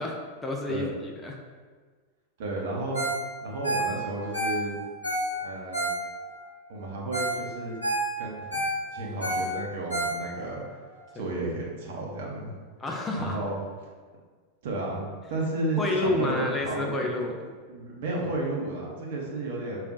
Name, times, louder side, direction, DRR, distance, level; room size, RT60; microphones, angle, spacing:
voice 1, 0.0-1.4 11.1-11.2 12.8-13.4 15.8-17.4, left 2 dB, 20° left, 1 dB, 0.4 m, -29 dB
voice 2, 2.4-3.0 3.4-4.8 5.4-5.9 6.7-7.8 8.2-8.5 8.9-10.8 11.1-12.6 13.2-13.5 14.6-17.0 17.7-19.9, right 2 dB, 55° right, -2 dB, 0.7 m, -32 dB
Ringtone, 2.9-3.2 3.5-6.4 6.8-6.9 7.1-7.4 7.7-10.6 11.0-11.1, right 1 dB, 85° left, 0.9 m, -30 dB
5.1 x 2.4 x 2.5 m, 1.5 s
figure-of-eight pair, 90°, 0 cm